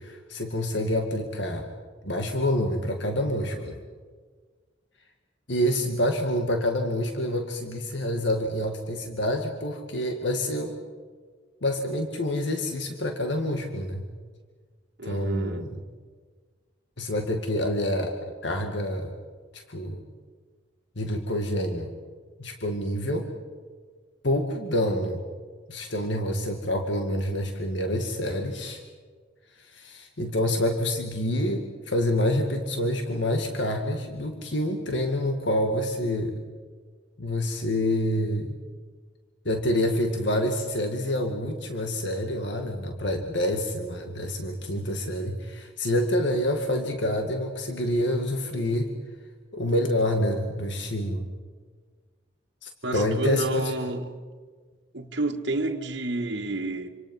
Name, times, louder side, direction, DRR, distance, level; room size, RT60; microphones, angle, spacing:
voice 1, 0.0-1.7 2.0-3.8 5.5-10.7 11.6-14.0 15.0-15.7 17.0-19.1 19.5-20.0 21.0-21.9 22.4-23.3 24.2-25.2 25.7-28.8 29.6-36.4 37.2-38.6 39.5-48.9 49.5-51.3 52.6-53.7, left 1 dB, 65° left, 2.1 m, -27 dB
voice 2, 15.0-15.7 52.8-54.2 54.9-56.9, right 2 dB, 65° right, 1.7 m, -30 dB
27.0 x 26.5 x 5.6 m
head